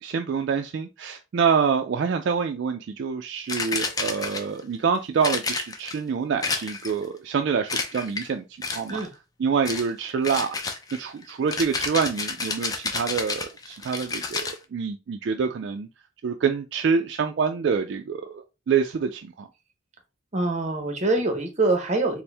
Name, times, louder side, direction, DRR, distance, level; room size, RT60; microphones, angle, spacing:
voice 1, 0.0-8.4 8.7-9.0 9.4-10.6 10.9-15.9 16.2-19.5, right 6 dB, 60° right, 0.3 m, -26 dB
sound 1, 3.5-4.6 5.2-6.0 6.4-7.1 7.7-8.3 8.6-9.1 9.7-9.9 10.2-14.6, left 4 dB, 20° left, 0.4 m, -30 dB
voice 2, 20.3-22.2, right 2 dB, 35° right, 0.7 m, -24 dB
4.3 x 2.0 x 3.3 m
head